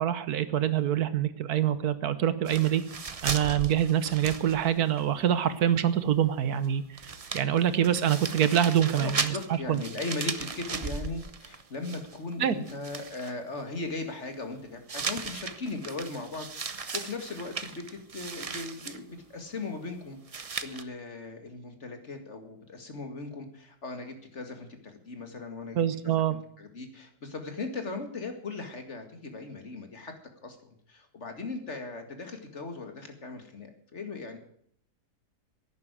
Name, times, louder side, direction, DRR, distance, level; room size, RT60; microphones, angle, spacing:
voice 1, 0.0-2.8 3.2-9.8 12.4-12.5 25.8-26.3, right 10 dB, 70° right, 14 dB, 1.4 m, -25 dB
Newspaper rustle, 2.5-5.0 5.3-5.4 6.6-6.7 7.0-12.3 12.7-13.3 14.9-19.0 20.3-20.8, right 5 dB, 40° right, 0.5 m, -36 dB
voice 2, 8.9-30.1 30.4-30.6 30.9-34.4, left 3 dB, 45° left, 6 dB, 2.2 m, -38 dB
11.5 x 9.7 x 9.3 m, 0.66 s
omnidirectional pair, 1.7 m